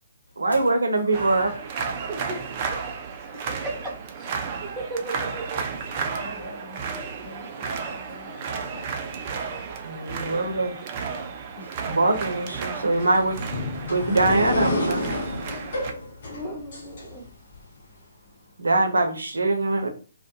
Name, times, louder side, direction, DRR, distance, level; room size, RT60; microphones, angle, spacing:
voice 1, 0.4-1.5 6.0-6.1 9.8-10.8 11.8-13.4 13.9-15.0 18.6-19.9, right 2 dB, 75° right, 0.6 m, -23 dB
voice 2, 1.0-1.6 3.3-3.4 6.2-6.8 7.2-8.4 8.7-8.9 11.6-11.8, left 1 dB, 85° left, 0.9 m, -42 dB
sound 1, 1.1-15.9, right 5 dB, 35° right, 0.3 m, -33 dB
voice 3, 1.9-2.4 2.7-2.8 3.3-4.4 4.6-5.6 15.9-17.2, right 2 dB, 10° right, 0.8 m, -36 dB
sound 2, 12.9-17.6, left 1 dB, 50° left, 0.7 m, -30 dB
2.3 x 2.1 x 2.7 m
figure-of-eight pair, 135°, 0 cm